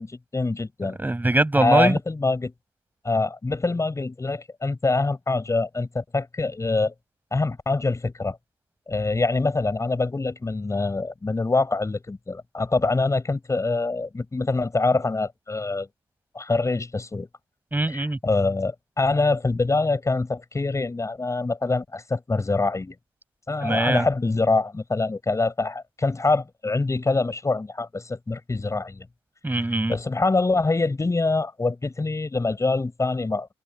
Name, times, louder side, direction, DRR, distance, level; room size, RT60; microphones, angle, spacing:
voice 1, 0.0-1.0 1.6-2.5 3.0-6.9 7.3-8.4 8.9-15.9 16.3-17.3 17.9-22.9 23.5-29.1 29.9-33.5, left 3 dB, 30° left, 6.8 m, -25 dB
voice 2, 1.0-2.0 17.7-18.2 23.6-24.1 29.4-30.0, right 2 dB, 20° right, 6.5 m, -22 dB
supercardioid pair, 50°, 10 cm